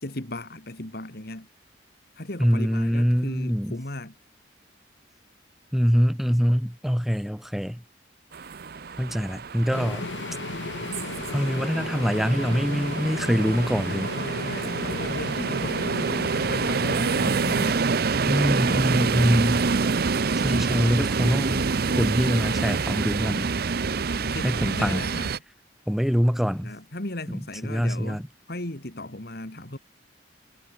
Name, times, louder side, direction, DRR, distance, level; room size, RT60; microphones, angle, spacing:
voice 1, 0.0-1.5 2.2-4.1 14.1-17.4 18.2-18.9 24.2-25.3 26.5-28.2 28.5-29.8, left 1 dB, 55° left, 2.9 m, -37 dB
voice 2, 2.4-3.8 5.7-7.8 9.0-10.1 11.3-14.1 18.3-19.9 20.4-21.7 22.0-23.5 24.4-25.0 25.9-26.7 27.6-28.3, equal, ahead, 0.9 m, -24 dB
sound 1, 8.3-25.4, right 4 dB, 55° right, 0.7 m, -27 dB
sound 2, 9.7-17.7, left 3 dB, 75° left, 1.1 m, -34 dB
head